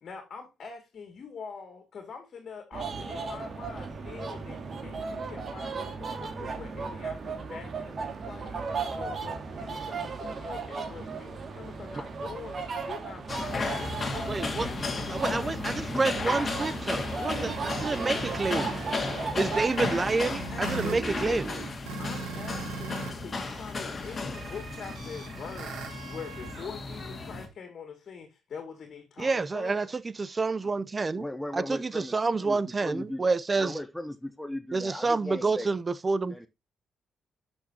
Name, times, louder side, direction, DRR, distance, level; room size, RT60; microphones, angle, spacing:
voice 1, 0.0-8.6 9.0-15.6 16.0-19.7 20.3-21.7 22.0-29.9, left 6 dB, 55° left, 2.4 m, -45 dB
sound 1, 2.7-19.7, right 4 dB, 45° right, 2.2 m, -36 dB
sound 2, 13.3-27.5, left 3 dB, 35° left, 2.2 m, -34 dB
voice 2, 14.3-14.7 15.2-17.5 17.8-18.7 19.4-20.3 20.7-21.4 29.2-29.9 30.2-31.2 31.5-33.7 34.7-36.3, right 3 dB, 30° right, 0.7 m, -28 dB
sound 3, 16.9-23.1 23.4-26.7, right 4 dB, 85° right, 2.8 m, -40 dB
voice 3, 31.0-35.8 36.3-36.5, left 1 dB, 5° left, 0.9 m, -38 dB
11.5 x 6.3 x 2.9 m
cardioid pair, 90°, 0 cm